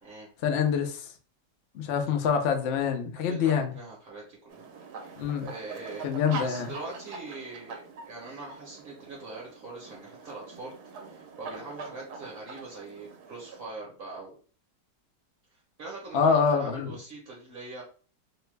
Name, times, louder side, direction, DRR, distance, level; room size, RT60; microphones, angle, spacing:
voice 1, 0.4-1.1 1.7-3.7 5.2-5.5 6.0-6.7 16.1-16.9, left 6 dB, 75° left, 0.6 m, -26 dB
voice 2, 3.3-4.7 5.4-6.0 6.4-10.7 11.0-14.4 15.5-17.8, right 3 dB, 45° right, 0.8 m, -42 dB
sound 1, 4.5-13.7, right 4 dB, 70° right, 1.1 m, -43 dB
3.0 x 2.2 x 3.2 m
omnidirectional pair, 1.9 m